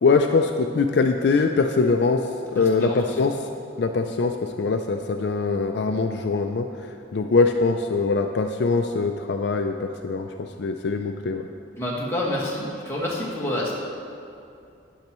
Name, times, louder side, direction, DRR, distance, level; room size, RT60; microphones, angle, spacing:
voice 1, 0.0-2.3 2.5-3.4 3.8-11.4, left 4 dB, 60° left, 5 dB, 0.4 m, -22 dB
voice 2, 2.6-3.0 11.8-13.7, left 1 dB, 15° left, -6 dB, 1.6 m, -28 dB
12.0 x 9.4 x 3.0 m, 2.5 s
head